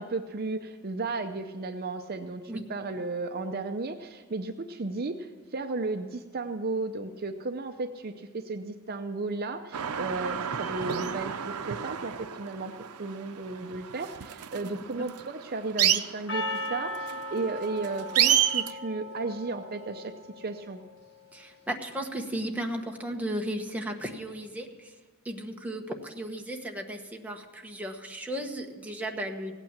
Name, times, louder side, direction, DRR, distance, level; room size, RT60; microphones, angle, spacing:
voice 1, 0.0-12.7 13.0-20.8, right 3 dB, 45° right, 7 dB, 0.6 m, -34 dB
sound 1, 9.7-18.7, right 10 dB, 85° right, 0.6 m, -30 dB
Percussion, 16.3-20.6, left 1 dB, 60° left, 1.9 m, -37 dB
voice 2, 21.3-24.9 25.2-29.6, right 1 dB, 5° right, 1 dB, 1.2 m, -35 dB
16.5 x 9.0 x 7.3 m, 1.3 s
head